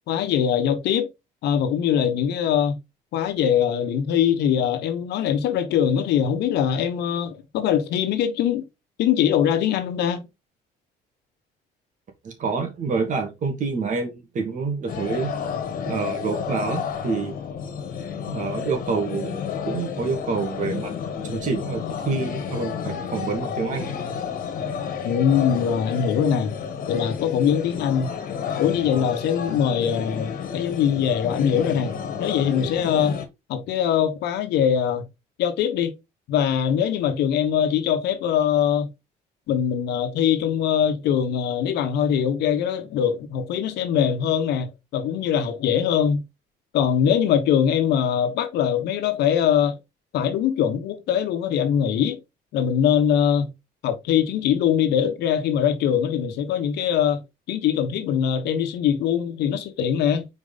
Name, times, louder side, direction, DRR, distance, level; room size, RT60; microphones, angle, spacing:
voice 1, 0.1-1.1 1.4-2.8 3.1-8.6 9.0-10.3 25.0-26.6 26.9-28.1 28.6-33.2 33.5-35.1 35.4-35.9 36.3-38.9 39.5-46.2 46.7-49.8 50.1-52.2 52.5-53.5 53.8-57.2 57.5-60.3, left 8 dB, 80° left, 1.2 m, -22 dB
voice 2, 12.2-15.3 15.9-17.4 18.3-20.9 21.2-23.9, right 4 dB, 50° right, 2.5 m, -27 dB
sound 1, 14.9-33.3, left 7 dB, 55° left, 1.7 m, -31 dB
5.0 x 4.7 x 4.0 m
cardioid pair, 110°, 17 cm